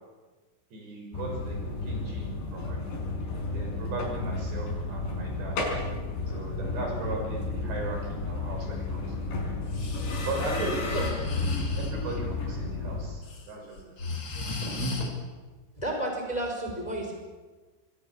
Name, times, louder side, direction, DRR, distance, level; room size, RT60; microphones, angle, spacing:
voice 1, 0.7-3.1 3.5-5.6 6.3-9.6 10.2-11.1 11.8-14.1 14.6-14.7, right 3 dB, 75° right, 1 dB, 8.5 m, -37 dB
sound 1, 1.1-13.1, left 3 dB, 85° left, 7.5 m, -32 dB
Breathing, 9.6-12.2 13.0-13.4 13.8-15.1, left 3 dB, 30° left, 2.5 m, -34 dB
voice 2, 15.8-17.1, right 1 dB, 10° left, 1 dB, 4.6 m, -32 dB
27.0 x 22.0 x 7.3 m, 1.3 s
omnidirectional pair, 5.0 m